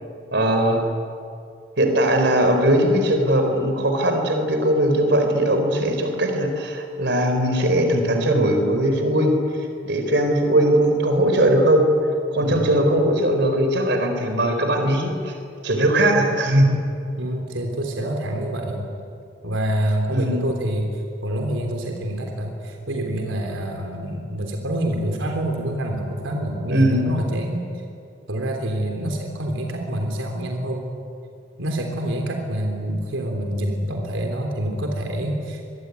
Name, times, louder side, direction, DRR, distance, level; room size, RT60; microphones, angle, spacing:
voice 1, 0.3-0.9 1.8-9.4 9.8-11.9 12.3-15.3 15.6-16.8 20.1-20.5 26.7-27.1, right 1 dB, 60° right, 5 dB, 4.4 m, -19 dB
voice 2, 17.2-18.9 19.4-27.9 28.3-30.9 31.6-35.6, right 1 dB, 85° right, 2 dB, 3.6 m, -26 dB
26.0 x 23.0 x 9.7 m, 2.5 s
head